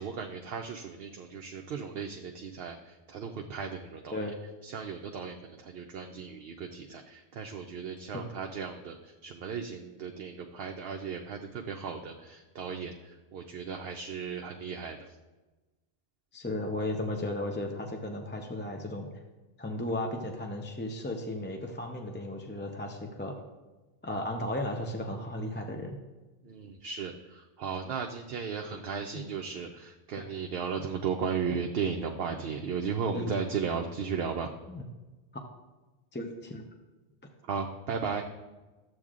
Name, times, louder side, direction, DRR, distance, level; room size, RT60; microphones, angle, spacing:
voice 1, 0.0-4.3 4.6-15.2 26.4-34.5 37.5-38.2, right 6 dB, 60° right, 3 dB, 0.7 m, -36 dB
voice 2, 16.3-19.1 19.6-23.4 24.0-26.0 33.1-33.3 34.7-34.8 36.1-36.6, left 1 dB, 15° left, 2 dB, 0.4 m, -35 dB
12.0 x 7.8 x 2.4 m, 1.2 s
omnidirectional pair, 1.2 m